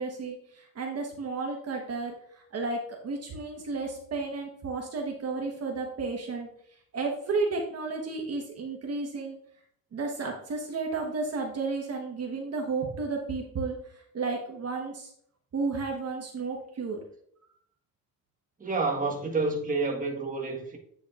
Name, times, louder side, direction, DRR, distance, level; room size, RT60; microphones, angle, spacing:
voice 1, 0.0-6.5 6.9-9.4 9.9-13.7 14.1-15.1 15.5-17.0, right 4 dB, 45° right, 1.3 m, -32 dB
voice 2, 18.6-20.8, right 3 dB, 25° right, 1.6 m, -29 dB
8.6 x 7.0 x 2.5 m
cardioid pair, 125°, 34 cm